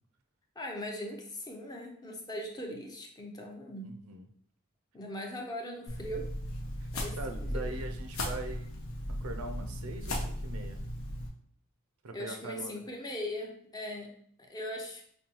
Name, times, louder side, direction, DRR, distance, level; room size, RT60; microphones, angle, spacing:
voice 1, 0.6-3.9 4.9-6.3 6.9-7.7 12.1-14.1 14.4-15.0, left 1 dB, 20° left, 1 dB, 0.5 m, -40 dB
voice 2, 3.8-4.3 6.8-6.9 7.2-8.7 9.1-10.8 12.0-12.8, right 2 dB, 75° right, 6 dB, 0.5 m, -42 dB
sound 1, 5.9-11.3, left 1 dB, 70° left, 0.8 m, -36 dB
5.2 x 2.3 x 2.9 m, 0.63 s
head